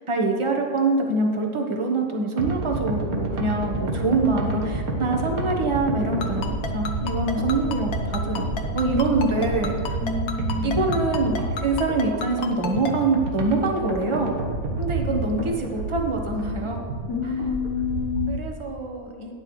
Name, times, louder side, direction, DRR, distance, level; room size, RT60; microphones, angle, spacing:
voice 1, 0.1-10.0 10.6-14.3 14.8-16.8 17.2-17.4 18.3-19.3, right 2 dB, 25° right, 2 dB, 1.0 m, -25 dB
sound 1, 2.4-18.4, right 2 dB, 85° right, 1.8 m, -29 dB
Ringtone, 6.2-12.9, left 5 dB, 85° left, 1.4 m, -31 dB
voice 2, 10.0-11.0 17.1-18.4, left 6 dB, 45° left, -5 dB, 1.5 m, -28 dB
12.5 x 9.6 x 3.1 m, 2.2 s
omnidirectional pair, 1.5 m